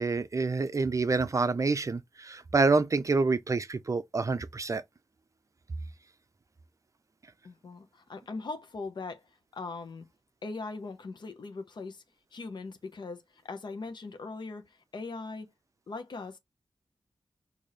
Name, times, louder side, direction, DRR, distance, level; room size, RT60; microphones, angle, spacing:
voice 1, 0.0-4.8, right 3 dB, 40° right, 0.5 m, -27 dB
voice 2, 7.4-9.2 9.5-10.0 10.4-12.0 12.3-15.5 15.9-16.4, left 3 dB, 65° left, 0.9 m, -40 dB
4.9 x 2.7 x 4.0 m
cardioid pair, 55°, 8 cm